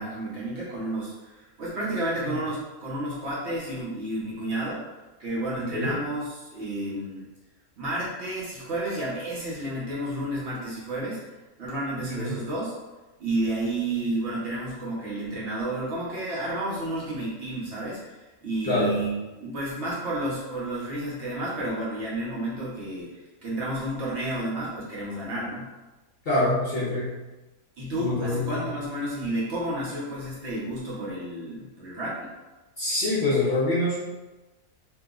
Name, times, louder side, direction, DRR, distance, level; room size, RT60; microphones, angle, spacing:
voice 1, 0.0-4.9 5.2-7.3 7.8-11.2 11.6-12.7 13.2-23.1 23.4-25.7 27.8-32.3, right 1 dB, 55° right, -6 dB, 0.9 m, -31 dB
voice 2, 18.6-19.0 26.3-27.2 28.0-28.7 32.8-34.0, left 2 dB, 55° left, -7 dB, 0.7 m, -25 dB
2.9 x 2.1 x 3.6 m, 1.1 s
omnidirectional pair, 1.5 m